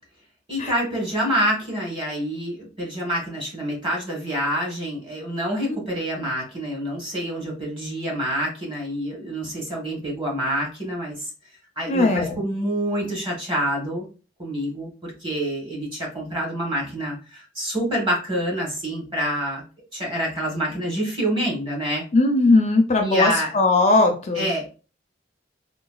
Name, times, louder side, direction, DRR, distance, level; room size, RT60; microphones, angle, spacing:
voice 1, 0.5-11.2 11.8-14.1 14.4-19.6 19.9-22.1 23.0-23.5 24.4-24.7, equal, 30° right, -1 dB, 1.2 m, -27 dB
voice 2, 11.9-12.4 22.1-24.5, left 2 dB, 35° left, 4 dB, 0.4 m, -19 dB
3.9 x 2.2 x 2.3 m, 0.34 s
head